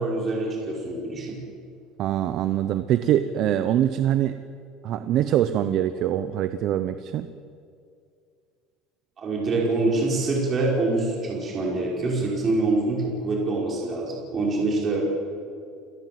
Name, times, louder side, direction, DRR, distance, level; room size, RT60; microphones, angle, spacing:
voice 1, 0.0-1.4 9.2-15.2, right 2 dB, 25° right, -2 dB, 5.2 m, -25 dB
voice 2, 2.0-4.4 4.8-7.3, right 11 dB, 45° right, 11 dB, 0.9 m, -23 dB
29.5 x 17.5 x 7.8 m, 2.3 s
cardioid pair, 165°, 0 cm